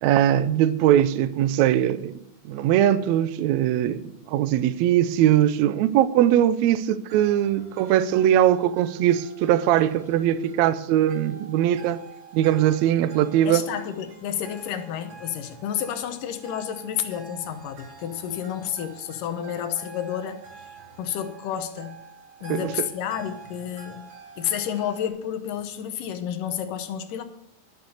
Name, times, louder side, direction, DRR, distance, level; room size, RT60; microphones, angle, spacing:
voice 1, 0.0-2.2 2.5-12.0 12.3-13.7 22.5-22.7, right 11 dB, 90° right, 1.6 m, -21 dB
sound 1, 7.1-25.1, right 5 dB, 65° right, 3.0 m, -47 dB
voice 2, 13.4-20.7 21.0-21.9 22.4-24.0 24.4-27.2, left 9 dB, 80° left, 2.5 m, -30 dB
12.5 x 7.1 x 6.5 m
omnidirectional pair, 3.9 m